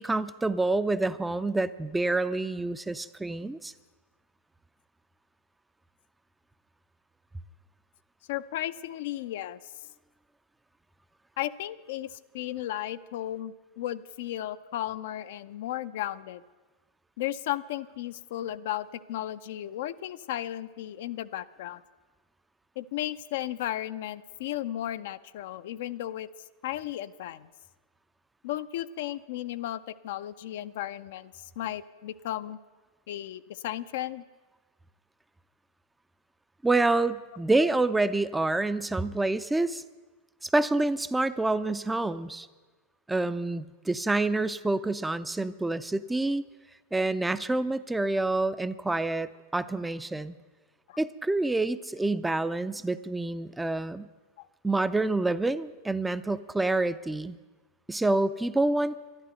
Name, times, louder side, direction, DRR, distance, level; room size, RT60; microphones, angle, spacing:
voice 1, 0.0-3.7 36.6-39.8 40.4-42.5 43.1-46.4 46.9-50.3 51.0-54.1 54.6-57.4 57.9-59.0, right 2 dB, 5° right, 13 dB, 0.4 m, -27 dB
voice 2, 8.3-9.6 11.4-16.4 17.2-21.8 22.8-26.3 26.6-27.5 28.4-32.6 33.1-34.2 50.9-51.0 54.4-54.5, left 13 dB, 55° left, 12 dB, 0.4 m, -35 dB
12.0 x 11.5 x 7.8 m, 1.3 s
figure-of-eight pair, 90°, 0 cm